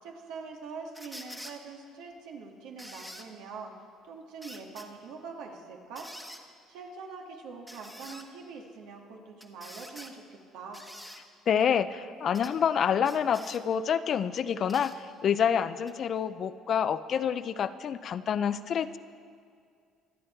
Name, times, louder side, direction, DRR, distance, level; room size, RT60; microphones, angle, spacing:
voice 1, 0.0-3.7 4.0-6.1 6.7-10.9, right 4 dB, 85° right, 1 dB, 2.0 m, -44 dB
sound 1, 0.9-1.6 2.8-3.3 4.4-4.9 6.0-6.4 7.7-8.3 9.4-10.1 10.7-11.2 12.3-12.5 13.0-13.6 14.7-15.0 15.9-16.0, equal, ahead, 1.2 m, -46 dB
voice 2, 11.5-19.0, left 8 dB, 50° left, 13 dB, 0.5 m, -27 dB
24.5 x 8.7 x 4.5 m, 2.2 s
cardioid pair, 105°, 0 cm